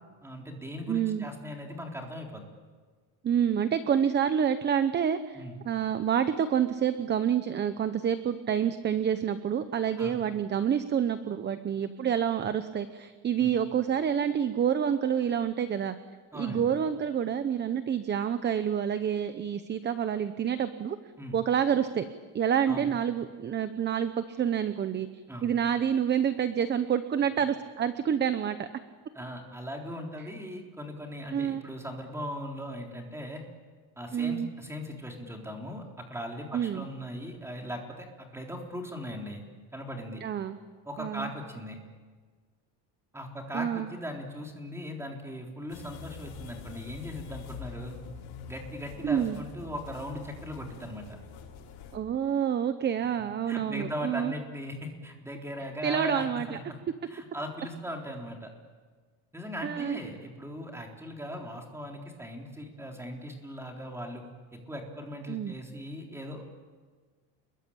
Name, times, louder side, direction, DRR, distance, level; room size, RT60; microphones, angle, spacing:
voice 1, 0.2-2.4 5.3-5.6 10.0-10.2 13.4-13.6 16.3-16.7 21.2-21.4 22.7-22.9 25.3-25.5 29.1-33.4 34.0-35.8 36.1-39.4 39.7-40.2 40.9-41.8 43.1-48.0 48.5-51.0 53.5-56.8 57.1-58.5 59.3-64.2 64.5-66.4, equal, 5° right, 1 dB, 3.8 m, -39 dB
voice 2, 0.9-1.3 3.2-15.9 16.3-21.0 21.3-22.0 22.3-28.7 31.3-31.6 34.1-34.5 36.5-36.9 40.2-40.6 41.0-41.3 43.5-43.9 49.0-49.4 51.9-54.3 55.8-56.6 59.6-60.0 65.3-65.5, right 8 dB, 25° right, 11 dB, 0.9 m, -28 dB
sound 1, 45.7-52.0, left 6 dB, 90° left, 5.8 m, -45 dB
29.5 x 21.5 x 8.7 m, 1.5 s
cardioid pair, 155°, 42 cm